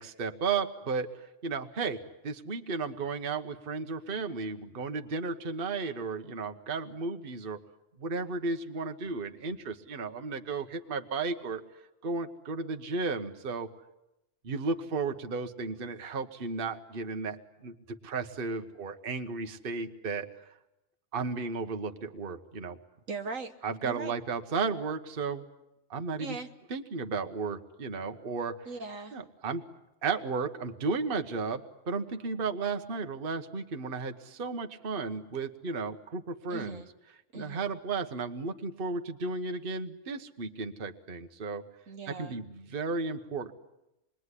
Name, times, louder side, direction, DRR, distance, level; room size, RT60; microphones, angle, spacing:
voice 1, 0.0-2.0 2.2-7.6 8.0-11.6 12.0-13.7 14.4-20.5 21.1-22.8 23.6-25.4 25.9-26.4 26.7-28.7 29.1-29.6 30.0-36.8 37.3-41.6 42.2-43.5, right 4 dB, 40° right, 6 dB, 1.3 m, -34 dB
voice 2, 23.1-23.5 23.8-24.2 26.2-26.5 28.7-29.2 36.5-36.9 37.3-37.7 41.9-42.4, right 4 dB, 60° right, 6 dB, 1.5 m, -40 dB
27.0 x 22.0 x 9.8 m, 0.90 s
omnidirectional pair, 1.6 m